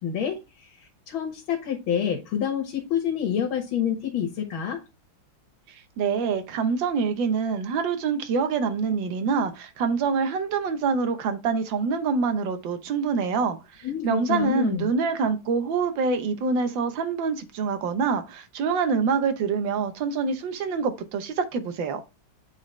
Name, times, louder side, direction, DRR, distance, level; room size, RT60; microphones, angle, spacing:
voice 1, 0.0-4.8 13.8-14.9, left 9 dB, 90° left, 2.0 m, -28 dB
voice 2, 6.0-22.0, right 5 dB, 70° right, 1.6 m, -26 dB
8.4 x 4.1 x 3.2 m
omnidirectional pair, 2.2 m